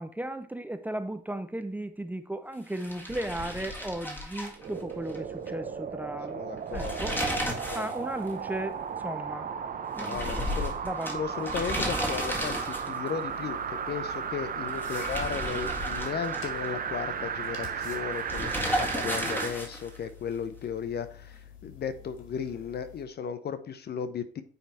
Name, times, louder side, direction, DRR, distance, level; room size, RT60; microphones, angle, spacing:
voice 1, 0.0-7.2 7.7-9.5 9.9-10.4 10.8-11.5, right 1 dB, 10° right, 0.6 m, -36 dB
sound 1, 2.7-5.2 5.5-5.6 6.6-8.0 8.3-8.4 10.0-13.1 14.7-16.7 18.3-20.0, equal, 10° left, 1.9 m, -33 dB
sound 2, 4.6-19.6 20.0-20.1, right 7 dB, 45° right, 0.8 m, -35 dB
voice 2, 6.3-7.9 10.0-10.9 11.1-13.6 13.9-24.4, left 7 dB, 55° left, 0.8 m, -35 dB
sound 3, 13.3-23.0, left 8 dB, 85° left, 1.8 m, -50 dB
9.3 x 3.5 x 4.2 m
cardioid pair, 90°, 20 cm